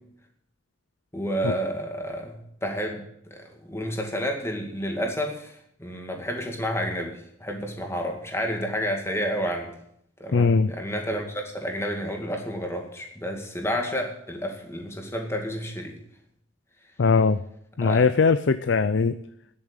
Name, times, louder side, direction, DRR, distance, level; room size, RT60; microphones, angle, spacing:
voice 1, 1.1-3.0 3.3-9.7 10.2-16.0 17.8-18.0, equal, 15° left, 2 dB, 2.2 m, -30 dB
voice 2, 10.3-10.7 17.0-17.4 17.8-19.2, left 4 dB, 65° left, 13 dB, 0.5 m, -20 dB
9.8 x 8.6 x 9.6 m, 0.72 s
head